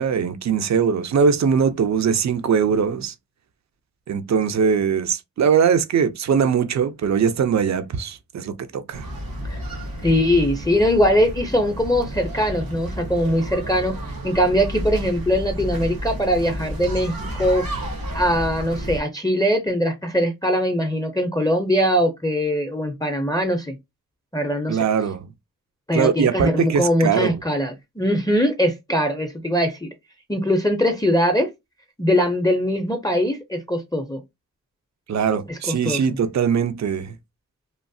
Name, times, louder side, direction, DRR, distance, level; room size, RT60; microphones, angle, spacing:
voice 1, 0.0-3.1 4.1-9.1 24.7-25.3 25.9-27.4 35.1-37.1, right 6 dB, 55° right, 0.4 m, -21 dB
sound 1, 8.9-19.0, equal, 85° right, 1.1 m, -31 dB
voice 2, 10.0-14.0 14.2-17.7 18.1-23.7 24.3-24.8 25.9-29.9 30.3-31.5 32.0-34.2 35.5-36.2, equal, 10° left, 0.4 m, -21 dB
3.0 x 2.0 x 2.6 m
cardioid pair, 45°, 35 cm